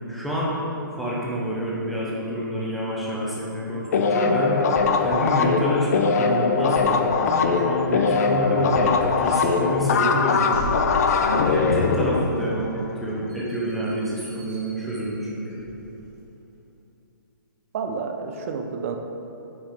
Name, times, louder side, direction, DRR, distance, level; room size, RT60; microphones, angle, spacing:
voice 1, 0.1-0.6 1.0-4.6 5.0-10.6 11.2-15.6, equal, ahead, -7 dB, 0.9 m, -28 dB
sound 1, 3.9-13.1, left 5 dB, 45° left, 0.5 m, -21 dB
sound 2, 7.6-16.3, right 1 dB, 20° right, 1.1 m, -38 dB
voice 2, 17.7-19.0, right 5 dB, 40° right, 4 dB, 0.5 m, -30 dB
7.4 x 5.4 x 3.8 m, 2.9 s
hypercardioid pair, 160°, 12 cm